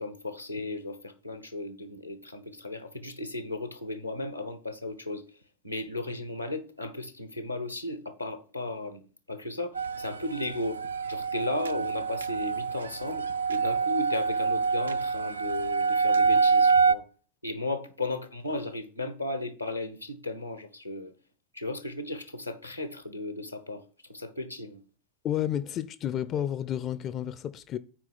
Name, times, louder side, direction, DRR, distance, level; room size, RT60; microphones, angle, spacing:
voice 1, 0.0-5.2 5.6-9.0 9.3-17.0 17.4-21.1 21.5-23.8 24.1-24.8, left 2 dB, 90° left, 1.1 m, -35 dB
sound 1, 9.7-16.9, right 5 dB, 75° right, 0.4 m, -26 dB
voice 2, 25.2-27.8, left 10 dB, 30° left, 0.4 m, -31 dB
8.9 x 4.7 x 5.7 m
figure-of-eight pair, 90°, 0 cm